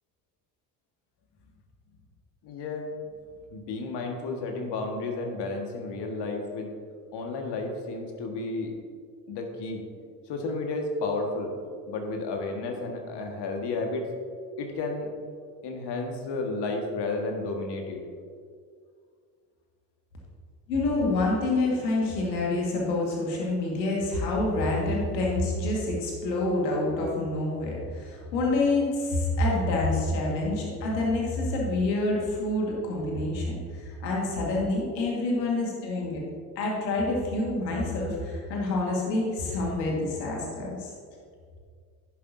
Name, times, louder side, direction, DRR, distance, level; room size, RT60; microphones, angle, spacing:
voice 1, 2.4-2.9 3.5-6.7 7.1-8.7 9.3-9.8 10.3-11.5 11.9-14.1 14.6-15.1 15.6-18.0 35.4-35.7, left 3 dB, 55° left, 2 dB, 1.8 m, -32 dB
voice 2, 20.7-36.2 36.6-40.9, left 2 dB, 80° left, -2 dB, 2.0 m, -27 dB
10.5 x 9.4 x 2.7 m, 2.1 s
hypercardioid pair, 55°, 49 cm